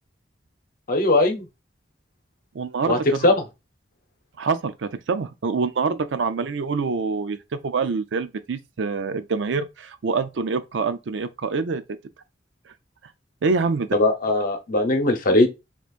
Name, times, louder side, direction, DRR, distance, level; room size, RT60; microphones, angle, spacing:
voice 1, 0.9-1.5 2.9-3.4 13.9-15.5, left 2 dB, 50° left, 0.9 m, -19 dB
voice 2, 2.5-3.3 4.4-11.8 13.4-13.9, right 4 dB, 80° right, 0.5 m, -26 dB
4.3 x 2.9 x 2.4 m
head